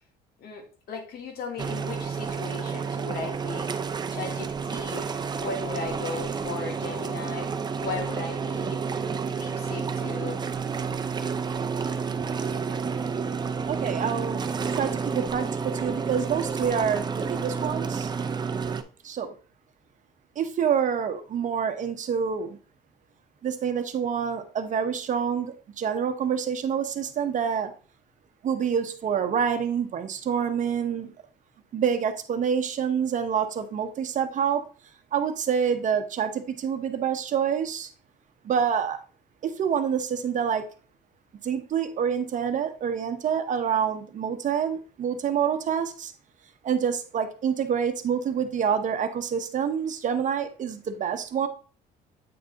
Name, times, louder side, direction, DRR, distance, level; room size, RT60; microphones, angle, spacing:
voice 1, 0.4-5.1 5.4-7.5 7.8-8.8 9.3-10.4, left 4 dB, 65° left, 1.9 m, -37 dB
sound 1, 1.6-18.8, right 5 dB, 25° right, 0.6 m, -30 dB
voice 2, 13.7-14.4 14.8-18.1 19.0-19.3 20.4-22.6 23.4-27.7 28.4-31.1 31.7-34.6 35.1-37.9 38.4-39.0 39.4-40.7 41.4-46.1 46.6-51.5, right 7 dB, 50° right, 0.9 m, -27 dB
8.6 x 3.4 x 3.9 m
cardioid pair, 110°, 17 cm